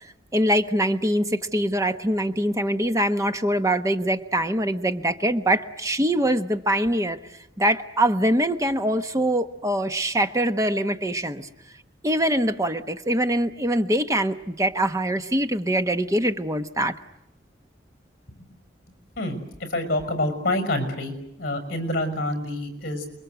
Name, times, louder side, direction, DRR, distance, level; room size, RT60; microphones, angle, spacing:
voice 1, 0.3-7.2 7.6-11.5 12.0-17.0, right 1 dB, 15° right, 9 dB, 1.0 m, -23 dB
voice 2, 19.2-21.1 21.4-23.1, left 1 dB, 50° left, 8 dB, 6.3 m, -27 dB
28.5 x 22.5 x 8.0 m, 0.86 s
head